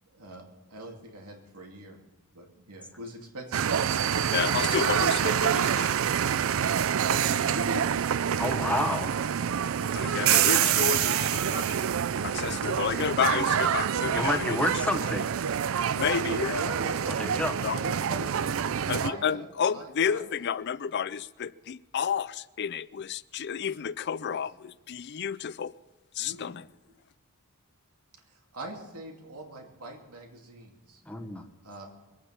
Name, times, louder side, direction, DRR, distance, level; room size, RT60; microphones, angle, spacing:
voice 1, 0.0-2.0 2.3-4.5 7.1-8.0 13.4-13.5 16.5-17.3 17.8-18.3 19.0-19.4 19.7-20.3 24.3-24.4 26.2-26.7 28.3-31.0 31.6-31.9, right 1 dB, 90° right, 2 dB, 2.5 m, -41 dB
sound 1, 3.5-19.1, right 8 dB, 65° right, 0.4 m, -26 dB
voice 2, 4.3-6.0 9.9-14.6 16.0-16.6 17.6-17.8 18.9-25.7 26.2-26.6, left 7 dB, 50° left, 18 dB, 0.4 m, -31 dB
voice 3, 8.4-9.1 12.5-12.6 14.2-15.6 17.1-17.5 31.0-31.5, left 1 dB, 5° left, 4 dB, 1.1 m, -30 dB
22.5 x 8.9 x 5.7 m, 1.1 s
head